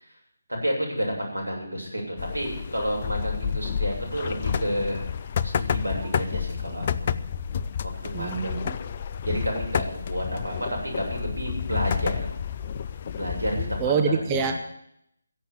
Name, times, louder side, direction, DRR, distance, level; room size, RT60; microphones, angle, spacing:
voice 1, 0.6-5.0 5.4-7.1 7.8-8.6 9.2-10.7 10.9-12.2 13.1-14.5, equal, 85° right, -1 dB, 7.7 m, -30 dB
sound 1, 2.2-13.9, left 7 dB, 30° left, 0.5 m, -30 dB
voice 2, 8.1-8.8 13.8-14.6, right 5 dB, 15° right, 5 dB, 1.0 m, -25 dB
16.5 x 7.6 x 9.8 m, 0.73 s
figure-of-eight pair, 150°, 0 cm